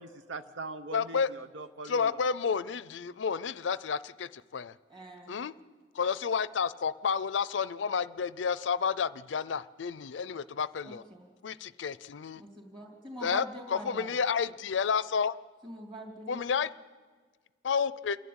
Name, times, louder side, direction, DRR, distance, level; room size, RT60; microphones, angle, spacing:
voice 1, 0.0-2.2, right 3 dB, 85° right, 9 dB, 0.9 m, -42 dB
voice 2, 0.9-1.3 1.9-4.7 5.3-5.5 6.0-11.0 11.4-12.4 13.2-15.3 16.3-16.7 17.6-18.2, left 6 dB, 80° left, 17 dB, 0.5 m, -30 dB
voice 3, 4.9-5.3 10.8-11.3 12.4-14.2 15.6-16.4, right 1 dB, 25° right, 0 dB, 2.9 m, -44 dB
28.5 x 11.0 x 8.7 m, 1.5 s
head